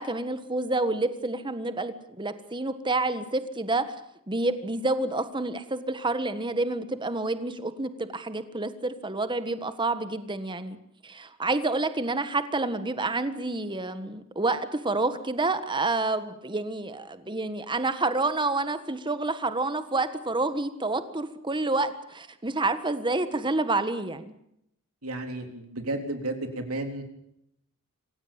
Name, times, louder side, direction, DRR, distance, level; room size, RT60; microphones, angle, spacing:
voice 1, 0.0-3.8 4.3-10.8 11.0-24.3, right 2 dB, 20° right, 11 dB, 1.5 m, -28 dB
voice 2, 25.0-27.0, right 2 dB, 80° right, 5 dB, 3.8 m, -32 dB
26.0 x 16.0 x 8.9 m, 0.78 s
head